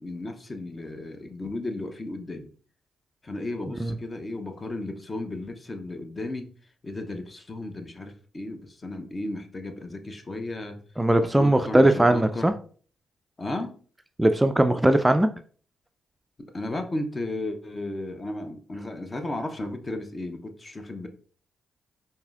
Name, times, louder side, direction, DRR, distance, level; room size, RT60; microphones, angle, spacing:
voice 1, 0.0-2.5 3.2-6.5 6.8-10.8 11.4-12.5 13.4-13.8 16.4-21.1, left 2 dB, 35° left, 0.7 m, -34 dB
voice 2, 11.0-12.5 14.2-15.3, right 1 dB, 15° right, 0.3 m, -20 dB
4.7 x 2.7 x 2.4 m
hypercardioid pair, 45°, 0 cm